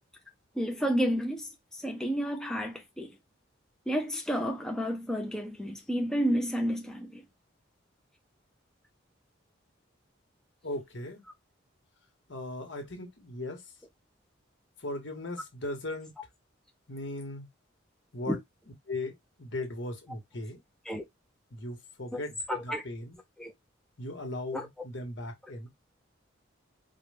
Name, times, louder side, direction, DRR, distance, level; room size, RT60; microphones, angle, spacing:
voice 1, 0.6-3.1 3.9-7.2 18.3-18.4 20.9-21.0 22.1-22.2 22.5-22.8 23.4-23.5 24.5-24.7, equal, 5° left, 0.4 m, -31 dB
voice 2, 10.6-11.2 12.3-13.7 14.8-16.1 16.9-17.5 18.1-18.4 18.9-20.6 21.5-23.2 24.0-25.7, left 2 dB, 65° left, 1.4 m, -38 dB
4.8 x 2.2 x 3.3 m
head